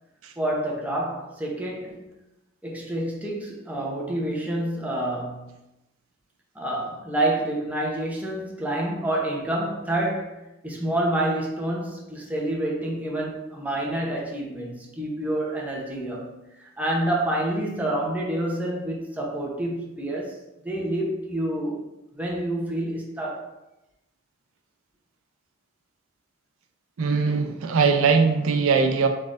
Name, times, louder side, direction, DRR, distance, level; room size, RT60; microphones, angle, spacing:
voice 1, 0.4-2.1 2.6-5.5 6.5-16.3 16.6-20.4 20.6-21.8 22.2-23.5, right 1 dB, 10° right, -3 dB, 0.7 m, -28 dB
voice 2, 27.0-29.1, right 5 dB, 90° right, 5 dB, 0.5 m, -21 dB
4.1 x 3.5 x 2.5 m, 0.93 s
head